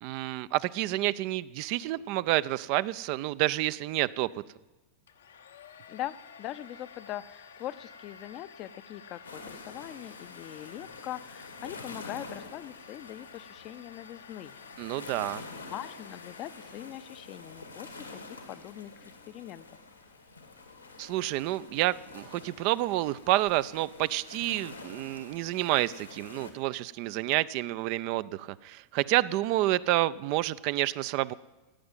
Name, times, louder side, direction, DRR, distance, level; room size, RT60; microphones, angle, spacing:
voice 1, 0.0-4.3 14.8-15.4 21.0-31.3, right 16 dB, 45° right, 16 dB, 0.4 m, -29 dB
Domestic sounds home sounds, 5.1-17.2, left 6 dB, 65° left, 0.8 m, -51 dB
voice 2, 5.9-14.6 15.7-19.8, left 13 dB, 35° left, 14 dB, 0.6 m, -42 dB
sound 1, 9.2-26.5, left 3 dB, 85° left, 1.9 m, -47 dB
16.0 x 8.7 x 7.8 m, 1.1 s
figure-of-eight pair, 90°, 0 cm